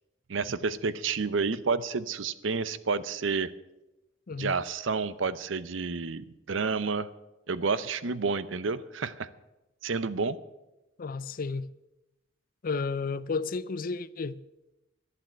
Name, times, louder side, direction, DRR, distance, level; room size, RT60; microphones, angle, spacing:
voice 1, 0.3-3.5 4.4-7.1 7.5-9.3 9.8-10.4, right 4 dB, 75° right, 0.7 m, -30 dB
voice 2, 11.0-11.7 12.6-14.4, left 4 dB, 45° left, 0.5 m, -32 dB
11.5 x 7.6 x 8.9 m
head